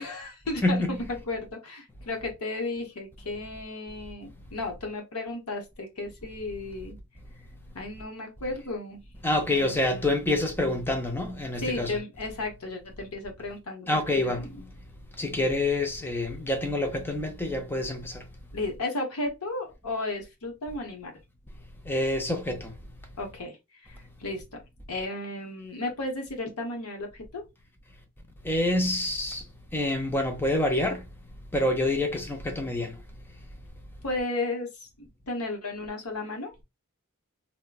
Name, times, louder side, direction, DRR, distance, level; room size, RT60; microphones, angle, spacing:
voice 1, 0.0-7.0 7.7-9.0 9.5-10.1 11.6-14.7 18.5-21.1 23.2-23.6 23.9-24.6 24.9-27.4 34.0-34.7 35.3-36.5, left 2 dB, 80° left, 0.9 m, -34 dB
voice 2, 0.6-1.0 9.2-12.0 13.9-14.5 15.2-18.2 21.8-22.7 28.4-29.4 29.7-31.0 31.5-33.0, left 1 dB, 10° left, 0.5 m, -27 dB
3.6 x 2.2 x 2.3 m
head